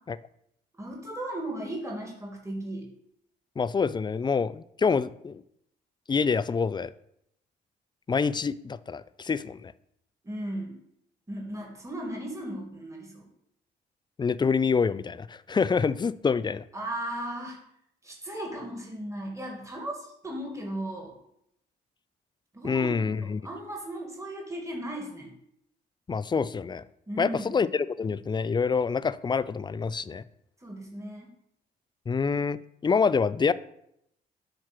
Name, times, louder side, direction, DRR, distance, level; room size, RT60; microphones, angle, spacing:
voice 1, 0.8-2.9 10.2-10.8 11.3-13.3 16.7-17.6 18.0-21.1 22.5-25.3 27.1-27.6 30.6-31.3, right 1 dB, 15° right, 2.0 m, -36 dB
voice 2, 3.6-5.4 6.1-6.9 8.1-9.7 14.2-16.6 22.6-23.4 26.1-26.8 27.2-30.2 32.1-33.5, left 5 dB, 20° left, 0.4 m, -26 dB
7.6 x 2.9 x 5.9 m
hypercardioid pair, 50°, 21 cm